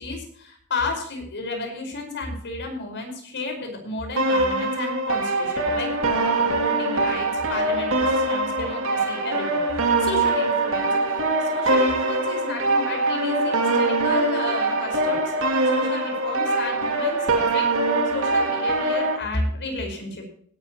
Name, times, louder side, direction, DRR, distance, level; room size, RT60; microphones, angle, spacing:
voice 1, 0.0-9.6 10.0-10.9 11.4-15.3 15.6-17.7 18.1-20.3, left 2 dB, 55° left, 3 dB, 5.1 m, -32 dB
sound 1, 4.2-19.2, right 2 dB, 65° right, 2.7 m, -23 dB
17.5 x 11.5 x 3.0 m, 0.62 s
head